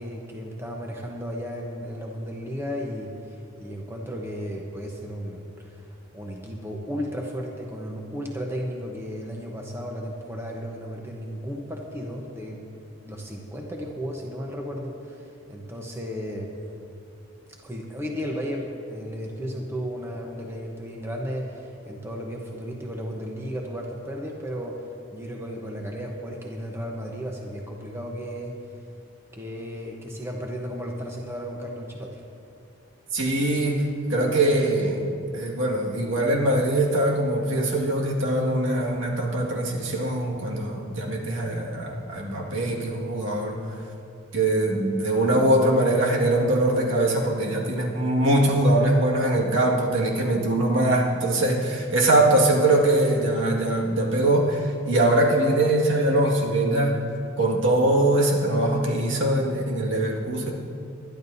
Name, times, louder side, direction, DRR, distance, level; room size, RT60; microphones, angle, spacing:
voice 1, 0.0-12.6 13.0-16.5 17.6-24.8 25.1-28.5 29.3-32.2, equal, 10° right, -1 dB, 0.9 m, -34 dB
voice 2, 33.1-35.0 35.3-43.6 44.3-57.0 57.4-60.5, right 1 dB, 70° right, -2 dB, 1.9 m, -22 dB
21.0 x 12.5 x 2.7 m, 2.6 s
head